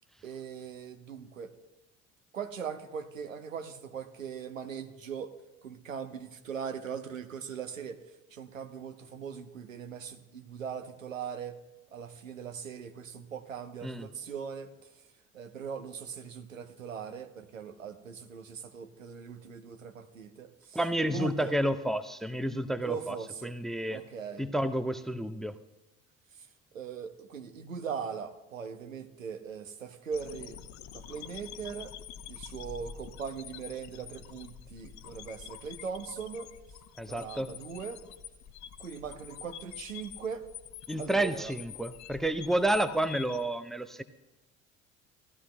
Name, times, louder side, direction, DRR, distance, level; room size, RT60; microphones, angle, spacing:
voice 1, 0.2-1.5 2.3-5.3 5.6-8.0 8.3-11.6 11.9-14.9 15.3-20.8 21.1-21.5 22.8-23.5 23.9-24.4 26.7-30.6 30.9-31.9 32.3-36.5 37.0-38.0 38.8-40.4 41.0-41.5, right 6 dB, 85° right, 9 dB, 0.9 m, -40 dB
voice 2, 20.7-23.2 23.4-24.0 24.4-25.5 37.0-37.5 40.9-44.0, right 1 dB, ahead, 12 dB, 0.4 m, -30 dB
sound 1, 30.1-43.4, left 9 dB, 45° left, 0.8 m, -47 dB
17.0 x 13.5 x 2.2 m, 1.0 s
figure-of-eight pair, 60°, 39 cm